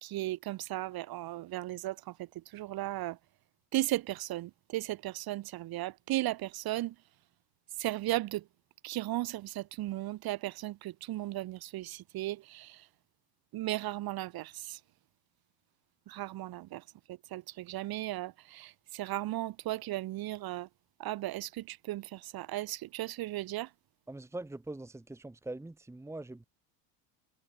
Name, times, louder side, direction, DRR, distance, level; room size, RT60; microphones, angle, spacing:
voice 1, 0.0-3.2 3.7-6.9 7.8-8.4 8.8-12.8 13.5-14.8 16.1-16.8 17.3-20.7 21.0-23.7, right 16 dB, 50° right, 3.9 m, -36 dB
voice 2, 24.1-26.4, right 2 dB, 5° right, 1.8 m, -42 dB
supercardioid pair, 115°, 48 cm